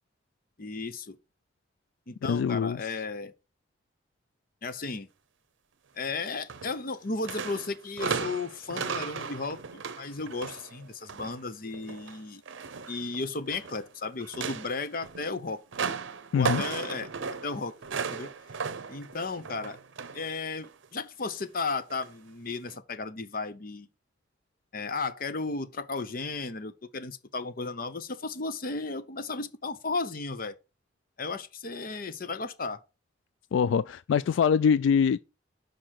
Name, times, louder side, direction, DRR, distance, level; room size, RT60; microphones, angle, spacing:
voice 1, 0.6-1.2 2.1-3.3 4.6-5.1 6.0-12.4 12.9-15.6 16.3-17.1 17.4-18.3 18.9-19.8 20.1-23.9 24.7-30.6 31.2-32.8, left 3 dB, 50° left, 0.8 m, -34 dB
voice 2, 2.3-2.8 16.3-16.6 33.5-35.2, left 6 dB, 80° left, 0.3 m, -24 dB
sound 1, 6.5-7.0 7.2-11.4 11.7-13.8 14.2-20.3 20.6-20.9 21.9-22.1 22.7-22.8, right 5 dB, 90° right, 0.7 m, -36 dB
6.5 x 5.1 x 5.8 m
head